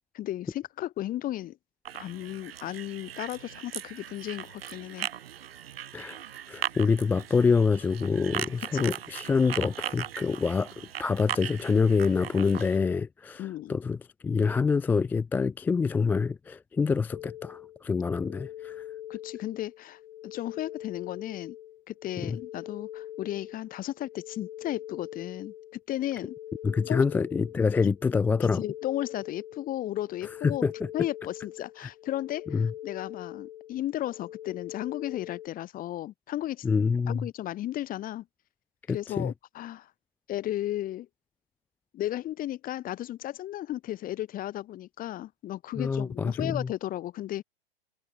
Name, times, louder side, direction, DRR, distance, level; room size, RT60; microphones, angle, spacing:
voice 1, 0.1-1.6 1.9-5.1 8.7-8.9 13.4-13.7 19.1-21.5 21.9-25.5 25.9-26.3 26.9-27.0 28.4-30.6 30.9-36.6 37.1-38.2 38.9-39.9 40.3-41.1 41.9-47.4, left 13 dB, 25° left, 1.5 m, -34 dB
sound 1, 1.8-12.8, right 10 dB, 65° right, 2.1 m, -39 dB
voice 2, 6.5-14.0 14.2-18.8 22.2-22.4 26.6-28.6 30.4-30.7 32.5-32.7 36.6-37.3 38.9-39.3 45.8-46.7, left 5 dB, 5° left, 0.3 m, -26 dB
sound 2, 17.1-35.5, left 12 dB, 60° left, 3.6 m, -43 dB
figure-of-eight pair, 105°, 32 cm